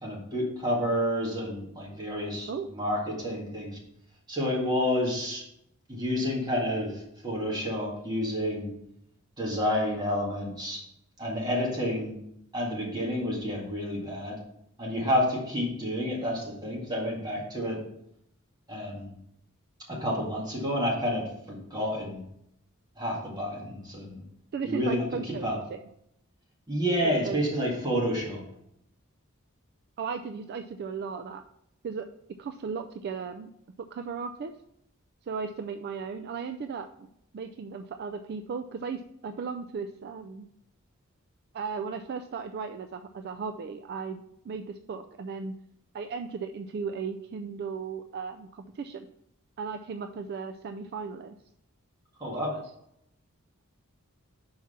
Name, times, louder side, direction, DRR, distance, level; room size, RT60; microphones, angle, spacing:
voice 1, 0.0-3.8 4.3-5.4 5.9-8.7 9.4-10.8 11.2-12.2 12.5-14.4 14.8-17.8 18.7-19.1 19.9-22.2 23.0-24.2 24.6-25.6 26.7-28.4 52.2-52.5, equal, 20° right, -3 dB, 2.0 m, -29 dB
voice 2, 24.5-25.8 27.0-27.4 30.0-31.4 31.8-32.1 32.4-33.5 33.9-34.5 35.2-37.1 37.3-40.5 41.5-45.5 45.9-49.1 49.6-51.4 52.4-52.6, right 5 dB, 50° right, 7 dB, 0.3 m, -36 dB
5.9 x 4.8 x 5.6 m, 0.77 s
head